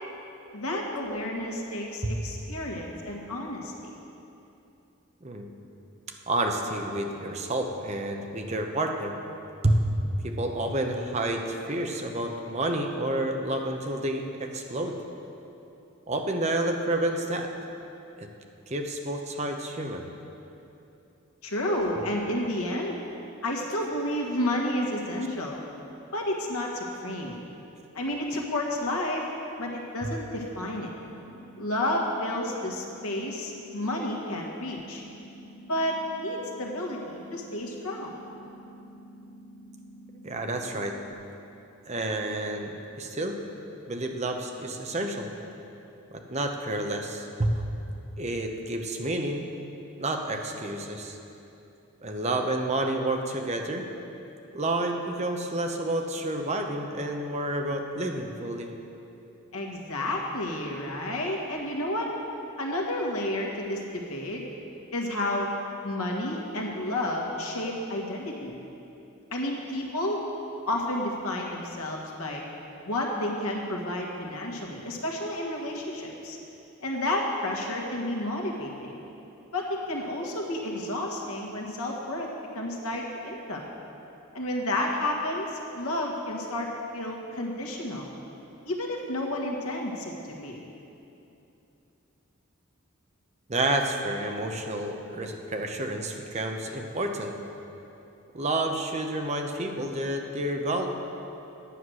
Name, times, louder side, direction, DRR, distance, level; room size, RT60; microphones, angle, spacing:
voice 1, 0.5-3.9 21.4-23.0 23.4-25.6 26.1-27.4 27.9-29.3 29.6-30.9 31.6-35.0 35.7-38.1 59.5-62.1 62.6-64.4 64.9-65.5 65.8-68.5 69.3-70.2 70.7-72.4 72.8-76.4 76.8-78.9 79.5-82.3 82.5-83.7 84.3-88.1 88.6-90.6, left 1 dB, 90° left, -1 dB, 1.6 m, -31 dB
voice 2, 6.3-9.1 9.6-9.8 10.2-15.0 16.1-17.5 18.2-18.3 18.7-20.0 30.0-30.1 40.2-40.9 41.9-43.4 43.9-45.3 46.1-47.6 48.2-49.5 50.0-51.2 52.0-53.8 54.5-58.7 93.5-97.3 98.3-100.9, right 1 dB, 30° right, 3 dB, 0.8 m, -29 dB
sound 1, 31.1-41.1, equal, 40° left, 0.4 m, -49 dB
9.9 x 8.0 x 6.3 m, 2.9 s
head